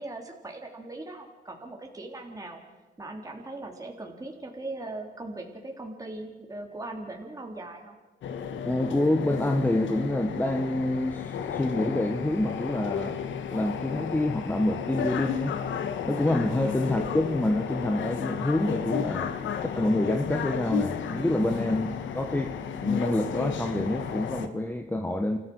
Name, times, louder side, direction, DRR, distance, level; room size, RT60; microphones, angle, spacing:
voice 1, 0.0-2.6 3.0-8.0 16.6-16.8 21.5-21.7, right 2 dB, 15° right, 1 dB, 3.4 m, -39 dB
sound 1, 8.2-24.5, left 7 dB, 70° left, 1.7 m, -33 dB
voice 2, 8.6-13.2 13.5-15.6 16.0-19.3 19.7-21.9 22.1-22.5 22.8-25.4, left 1 dB, 10° left, 5 dB, 1.5 m, -27 dB
29.5 x 14.0 x 6.3 m, 1.3 s
cardioid pair, 90°, 20 cm